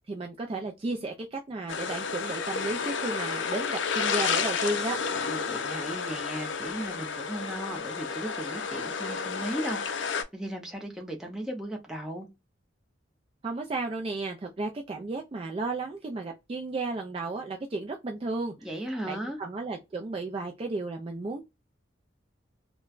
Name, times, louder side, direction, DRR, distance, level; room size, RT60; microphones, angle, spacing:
voice 1, 0.1-5.0 13.4-18.5 19.0-21.4, right 2 dB, 30° right, 0.3 m, -33 dB
sound 1, 1.7-10.2, left 5 dB, 70° left, 0.4 m, -31 dB
voice 2, 5.1-12.3 18.6-19.4, right 1 dB, 5° right, 0.7 m, -36 dB
3.0 x 2.1 x 2.4 m
head